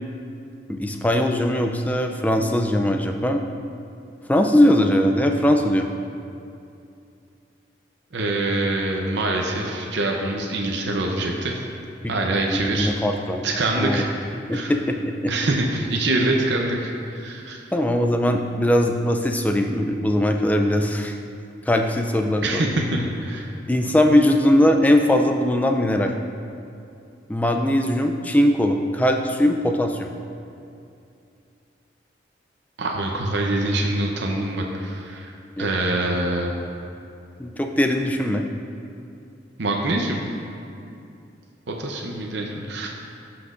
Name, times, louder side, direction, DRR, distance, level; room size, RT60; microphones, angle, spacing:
voice 1, 0.7-3.4 4.3-5.9 12.0-12.1 12.5-13.5 13.8-14.1 14.5-15.3 17.7-21.2 21.7-22.7 23.7-26.1 27.3-30.1 35.6-35.9 37.4-38.5, left 1 dB, 10° left, 3 dB, 0.3 m, -20 dB
voice 2, 8.1-11.6 12.1-12.9 13.4-14.1 14.5-14.7 15.3-17.6 22.4-23.5 32.8-35.3 35.6-36.5 39.6-40.3 41.7-42.9, right 2 dB, 75° right, 0 dB, 0.7 m, -24 dB
13.0 x 6.0 x 2.5 m, 2.6 s
head